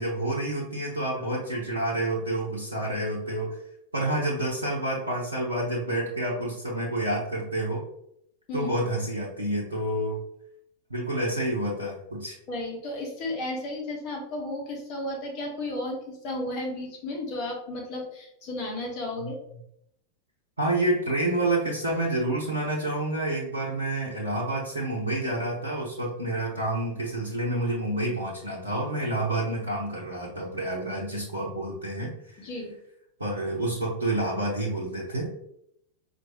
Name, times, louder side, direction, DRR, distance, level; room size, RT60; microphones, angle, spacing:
voice 1, 0.0-3.6 3.9-7.8 8.5-10.2 10.9-12.4 19.2-19.3 20.6-32.4 33.2-35.2, right 1 dB, 80° right, -5 dB, 0.8 m, -28 dB
voice 2, 12.5-19.4 32.4-32.7, left 1 dB, 40° left, 0 dB, 1.2 m, -33 dB
4.5 x 2.6 x 2.8 m, 0.74 s
figure-of-eight pair, 90°, 0 cm